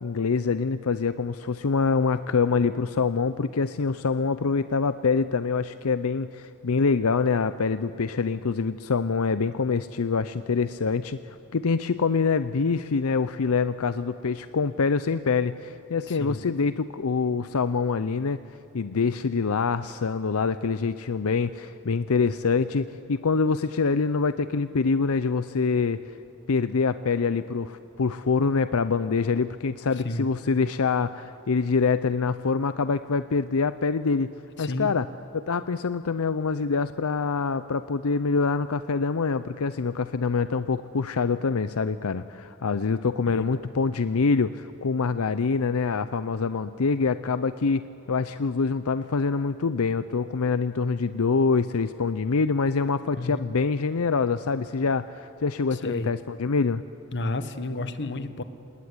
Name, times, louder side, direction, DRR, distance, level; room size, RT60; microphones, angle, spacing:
voice 1, 0.0-18.4 18.7-26.0 26.5-34.3 34.6-35.1 35.3-56.8, left 4 dB, 80° left, 13 dB, 0.6 m, -25 dB
voice 2, 16.1-16.4 30.0-30.3 34.6-34.9 43.3-43.5 53.2-53.5 55.7-56.1 57.1-58.4, left 2 dB, 55° left, 11 dB, 1.2 m, -31 dB
26.5 x 19.5 x 9.7 m, 2.6 s
head